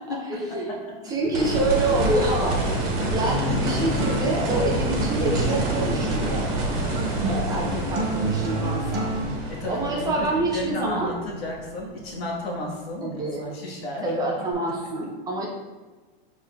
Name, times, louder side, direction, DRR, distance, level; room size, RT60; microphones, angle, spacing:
voice 1, 0.2-0.7 1.0-6.5 7.2-9.1 9.7-11.1 13.0-13.6 14.0-15.5, right 2 dB, 15° right, -2 dB, 0.3 m, -27 dB
Acoustic guitar, 1.2-9.2, equal, 70° right, 1.0 m, -31 dB
sound 1, 1.3-12.2 14.5-14.6, right 2 dB, 50° right, 1.2 m, -28 dB
voice 2, 9.5-14.1, left 1 dB, 85° left, -2 dB, 1.2 m, -33 dB
6.1 x 3.2 x 2.2 m, 1.3 s
hypercardioid pair, 135°, 30 cm